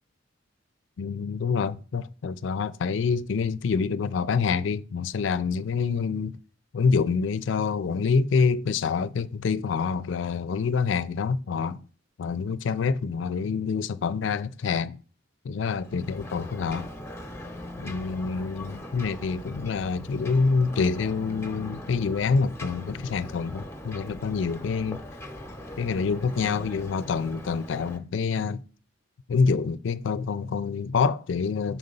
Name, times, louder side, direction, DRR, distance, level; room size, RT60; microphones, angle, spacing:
voice 1, 1.0-6.4 6.7-11.8 12.2-15.0 15.4-16.9 17.8-25.0 25.8-28.6 29.3-31.8, left 5 dB, 70° left, 0.4 m, -26 dB
Ocean, 15.7-28.0, left 1 dB, 15° left, 0.7 m, -40 dB
5.9 x 4.0 x 5.3 m
head